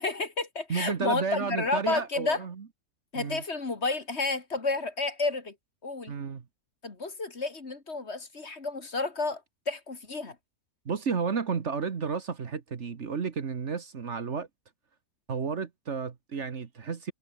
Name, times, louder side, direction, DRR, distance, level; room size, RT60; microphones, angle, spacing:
voice 1, 0.0-2.4 3.1-5.5 5.8-6.1 6.8-9.4 9.7-10.4, left 3 dB, 45° left, 2.6 m, -31 dB
voice 2, 0.7-2.7 3.2-3.4 6.1-6.5 10.9-14.5 15.3-17.1, right 5 dB, 55° right, 1.6 m, -32 dB
omnidirectional pair, 1.5 m